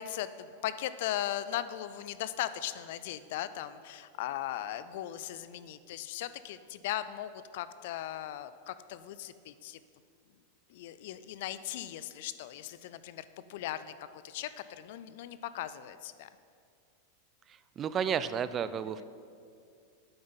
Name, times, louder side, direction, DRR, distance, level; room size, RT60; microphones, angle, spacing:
voice 1, 0.0-9.8 10.7-13.2 13.5-16.3, left 12 dB, 65° left, 14 dB, 0.3 m, -38 dB
voice 2, 17.8-19.0, right 7 dB, 30° right, 14 dB, 0.3 m, -31 dB
7.9 x 5.1 x 5.6 m, 2.4 s
hypercardioid pair, 115°, 0 cm